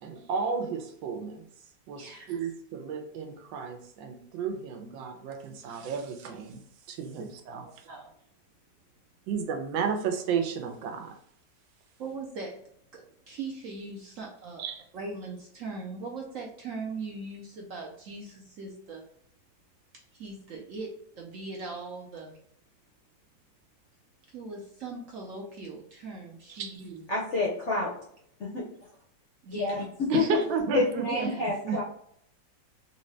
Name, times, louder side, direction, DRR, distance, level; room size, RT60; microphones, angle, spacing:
voice 1, 0.0-1.5 1.9-6.6 6.9-7.9 9.3-11.1 14.6-14.8 26.6-26.9 30.1-31.3 31.7-31.8, right 6 dB, 85° right, 6 dB, 1.4 m, -33 dB
voice 2, 2.0-2.3 7.6-8.1 12.0-12.6 12.9-14.7 14.9-19.0 19.9-22.4 24.3-27.0 29.4-29.8 30.1-30.3 31.1-31.8, right 3 dB, 65° right, -1 dB, 0.8 m, -40 dB
voice 3, 27.1-27.9 28.4-28.6 29.6-29.8 30.1-30.2 30.7-31.8, left 2 dB, 60° left, -2 dB, 0.7 m, -28 dB
3.6 x 2.7 x 3.2 m, 0.66 s
omnidirectional pair, 2.0 m